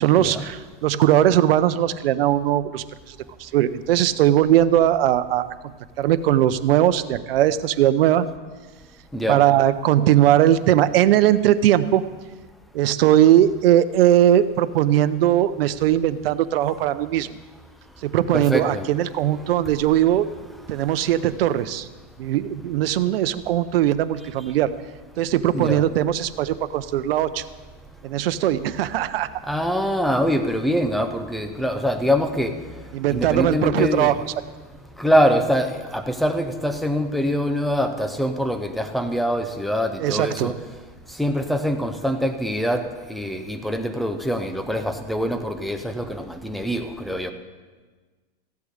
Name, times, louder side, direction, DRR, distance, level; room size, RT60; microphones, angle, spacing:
voice 1, 0.0-8.2 9.3-12.0 12.7-17.4 18.0-20.3 20.7-21.9 22.2-24.7 25.2-27.4 28.0-29.3 32.9-34.2 40.0-40.5, right 12 dB, 75° right, 12 dB, 0.7 m, -19 dB
voice 2, 18.3-18.9 25.5-25.8 29.5-32.5 33.1-34.2 35.0-40.6 41.2-42.8 43.1-47.3, equal, ahead, 7 dB, 0.3 m, -24 dB
15.0 x 8.4 x 6.5 m, 1.4 s
supercardioid pair, 150°, 30 cm